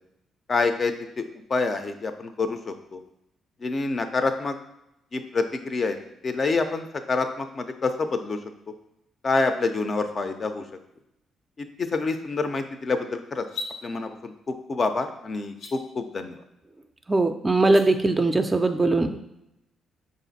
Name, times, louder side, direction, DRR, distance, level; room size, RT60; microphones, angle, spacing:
voice 1, 0.5-1.2 1.5-3.0 3.6-4.6 5.1-6.0 6.2-8.4 9.2-10.6 11.6-13.5 13.8-16.4, left 3 dB, 40° left, 7 dB, 0.5 m, -27 dB
sound 1, 13.5-13.7 15.5-15.7 17.6-17.8, left 3 dB, 80° left, 0.8 m, -35 dB
voice 2, 17.1-19.2, right 2 dB, 20° right, 6 dB, 0.4 m, -21 dB
5.4 x 2.5 x 4.0 m, 0.86 s
cardioid pair, 90°, 0 cm